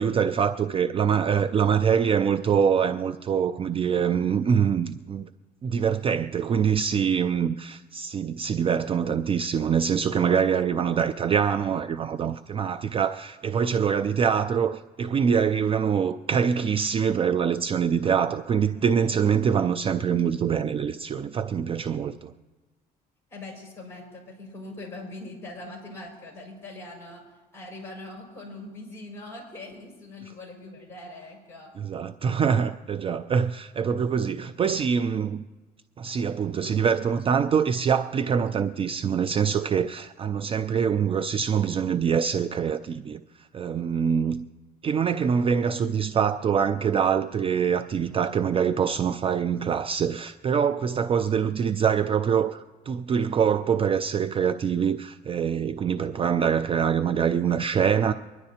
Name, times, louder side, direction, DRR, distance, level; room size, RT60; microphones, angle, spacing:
voice 1, 0.0-5.3 5.6-22.3 31.8-35.4 36.0-44.4 44.8-52.6 52.9-58.1, right 7 dB, 35° right, 0.4 m, -24 dB
voice 2, 23.3-27.2 27.5-31.7, left 2 dB, 15° left, 5.6 m, -41 dB
24.5 x 11.0 x 2.9 m
cardioid pair, 110°, 17 cm